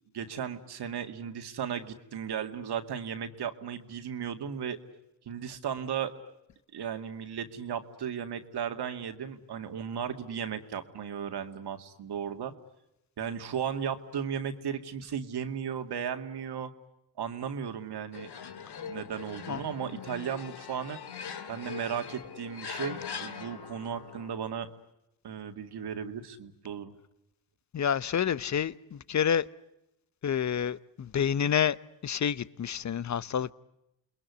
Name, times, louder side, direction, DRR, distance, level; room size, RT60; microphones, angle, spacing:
voice 1, 0.0-4.8 5.3-6.1 6.7-12.5 13.2-16.7 17.2-18.3 18.8-21.0 21.5-24.7 25.2-26.9, right 8 dB, 60° right, 2.4 m, -35 dB
sound 1, 18.1-24.3, left 7 dB, 60° left, 2.3 m, -41 dB
voice 2, 27.7-29.5 30.2-31.8 32.0-33.5, left 8 dB, 40° left, 1.0 m, -28 dB
29.0 x 21.5 x 9.6 m
cardioid pair, 75°, 45 cm